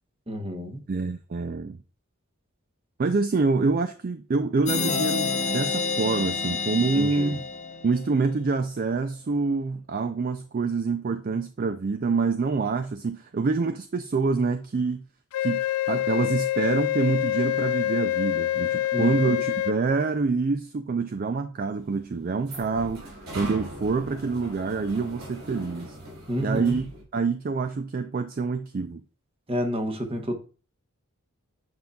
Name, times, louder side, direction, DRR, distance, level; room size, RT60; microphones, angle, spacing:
voice 1, 0.3-0.8 6.9-7.3 18.9-19.4 26.3-26.9 29.5-30.3, equal, 25° right, 0.9 m, -29 dB
voice 2, 0.9-1.8 3.0-7.4 7.8-15.0 15.4-26.0 26.4-26.9 27.1-29.0, right 4 dB, 40° right, 0.3 m, -26 dB
sound 1, 4.7-8.2, left 4 dB, 30° left, 0.8 m, -28 dB
Wind instrument woodwind instrument, 15.3-19.8, left 14 dB, 80° left, 0.3 m, -26 dB
sound 2, 21.8-27.0, right 1 dB, 70° right, 3.1 m, -41 dB
8.0 x 5.3 x 2.3 m
head